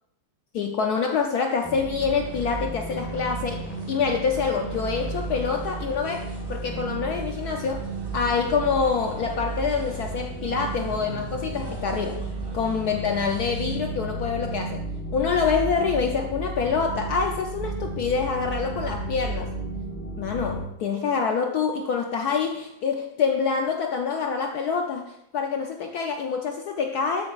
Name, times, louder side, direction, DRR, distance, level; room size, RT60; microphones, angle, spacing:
voice 1, 0.5-7.8 8.1-12.2 12.5-14.8 15.1-19.5 20.2-27.3, left 5 dB, 70° left, 3 dB, 0.9 m, -26 dB
sound 1, 1.6-20.7, right 3 dB, 10° left, 0.5 m, -33 dB
sound 2, 2.0-13.8, right 3 dB, 40° right, 0.3 m, -46 dB
12.5 x 6.8 x 2.4 m, 0.81 s
omnidirectional pair, 2.3 m